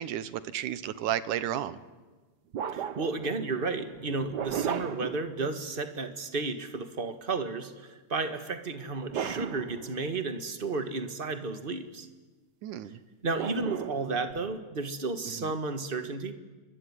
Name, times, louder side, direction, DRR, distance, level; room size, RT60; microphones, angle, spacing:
voice 1, 0.0-1.8 12.6-13.0 15.4-15.6, right 11 dB, 90° right, 14 dB, 2.6 m, -33 dB
sound 1, 1.0-1.2 2.5-5.9 8.9-10.3 13.3-14.6, right 8 dB, 75° right, 0.9 m, -36 dB
voice 2, 2.7-12.1 13.2-16.3, right 3 dB, 30° right, 8 dB, 1.1 m, -33 dB
24.5 x 22.5 x 9.9 m, 1.3 s
omnidirectional pair, 3.4 m